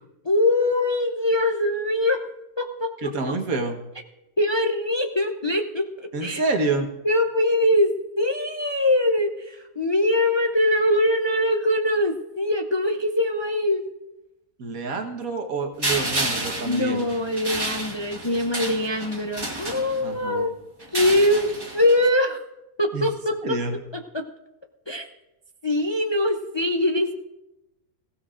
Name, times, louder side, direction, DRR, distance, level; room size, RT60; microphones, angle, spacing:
voice 1, 0.2-2.2 2.6-2.9 3.2-3.3 4.4-6.4 7.0-13.8 16.6-20.5 20.9-22.4 22.8-23.6 24.1-24.2 24.9-25.1 25.6-27.1, left 1 dB, 40° left, 4 dB, 0.4 m, -22 dB
voice 2, 3.0-3.8 6.1-6.9 14.6-17.1 20.0-20.5 22.9-23.0 23.4-23.8, right 3 dB, 80° right, 4 dB, 1.7 m, -27 dB
sound 1, 15.8-20.3 20.8-22.1, right 1 dB, 15° right, 1.6 m, -30 dB
21.5 x 16.0 x 2.5 m, 0.99 s
omnidirectional pair, 1.5 m